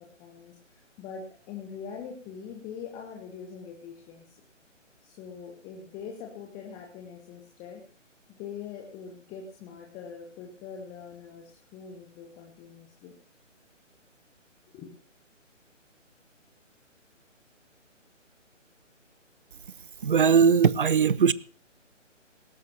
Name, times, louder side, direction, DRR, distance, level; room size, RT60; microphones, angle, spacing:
voice 1, 0.0-4.4 5.0-7.8 8.3-13.1 14.7-14.9, left 6 dB, 10° left, 1.1 m, -43 dB
voice 2, 20.0-21.3, right 6 dB, 45° right, 0.7 m, -20 dB
19.0 x 17.0 x 2.9 m
figure-of-eight pair, 145°, 38 cm